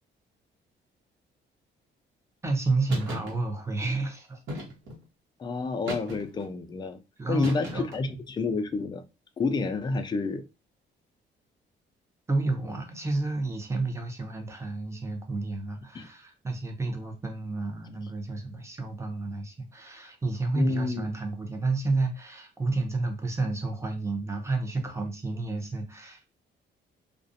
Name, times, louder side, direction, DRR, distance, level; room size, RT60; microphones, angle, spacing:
voice 1, 2.4-4.4 7.2-8.0 12.3-26.2, right 3 dB, 15° right, 0.7 m, -30 dB
sound 1, 2.9-3.3 4.5-5.0 5.9-6.5 7.4-8.1, right 1 dB, 70° right, 1.0 m, -37 dB
voice 2, 5.4-7.0 7.3-9.0 9.4-10.4 15.9-16.1 20.6-21.1, left 3 dB, 20° left, 0.3 m, -29 dB
2.4 x 2.1 x 2.6 m
cardioid pair, 90°, 20 cm